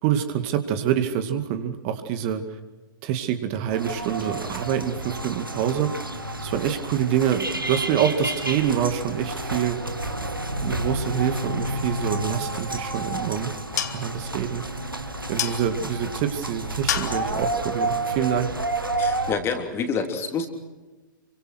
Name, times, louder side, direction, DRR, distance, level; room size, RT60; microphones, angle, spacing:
voice 1, 0.0-2.4 3.0-5.9 6.4-9.8 10.6-13.5 13.9-14.6 15.3-18.5, right 9 dB, 35° right, 8 dB, 2.2 m, -26 dB
sound 1, 3.7-19.3, right 2 dB, 85° right, 2.5 m, -30 dB
sound 2, 12.6-19.0, left 9 dB, 55° left, 2.1 m, -35 dB
voice 2, 19.0-20.5, left 5 dB, 20° left, 6 dB, 3.5 m, -27 dB
28.0 x 25.0 x 6.3 m, 1.2 s
figure-of-eight pair, 110°, 11 cm